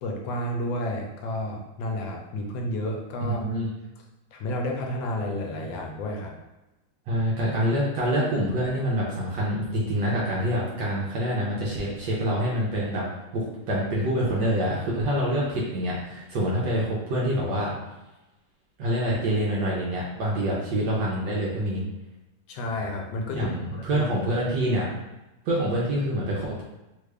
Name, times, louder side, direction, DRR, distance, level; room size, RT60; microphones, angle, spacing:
voice 1, 0.0-3.5 4.3-6.3 22.5-23.5 23.9-24.1, left 1 dB, 80° left, 1 dB, 1.3 m, -31 dB
voice 2, 3.2-3.7 7.1-13.1 13.3-17.7 18.8-21.8 23.3-24.9 25.5-26.6, equal, 75° right, -5 dB, 1.3 m, -26 dB
3.4 x 2.4 x 3.2 m, 1.0 s
omnidirectional pair, 2.1 m